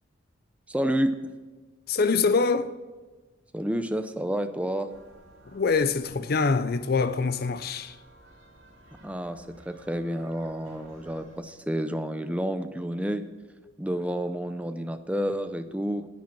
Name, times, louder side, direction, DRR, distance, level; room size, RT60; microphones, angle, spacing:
voice 1, 0.7-1.2 3.5-4.9 9.0-13.2 13.8-16.1, equal, 5° right, 0.5 m, -29 dB
voice 2, 1.9-2.7 5.5-8.0, left 4 dB, 50° left, 0.5 m, -24 dB
church bell song, 4.9-11.4, right 1 dB, 80° right, 2.3 m, -54 dB
10.0 x 8.8 x 6.0 m
head